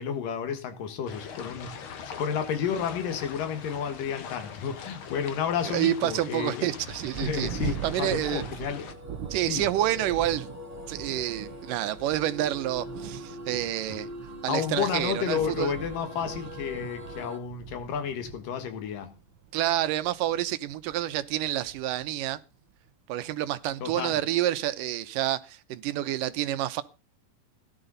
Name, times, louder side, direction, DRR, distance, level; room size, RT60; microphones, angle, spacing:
voice 1, 0.0-6.7 7.2-8.9 9.4-9.7 13.9-14.0 14.5-19.1 23.8-24.1, left 7 dB, 85° left, 3.3 m, -31 dB
sound 1, 1.1-8.9, left 7 dB, 55° left, 1.6 m, -42 dB
voice 2, 5.7-7.5 7.8-8.4 9.3-10.5 10.9-14.1 14.4-15.7 19.5-22.4 23.1-26.8, right 13 dB, 90° right, 2.5 m, -28 dB
Thunder, 6.8-22.9 23.7-23.8 24.3-24.7, right 8 dB, 60° right, 1.5 m, -42 dB
sound 2, 8.6-17.4, left 1 dB, 5° right, 2.5 m, -43 dB
16.5 x 11.0 x 4.0 m
omnidirectional pair, 3.7 m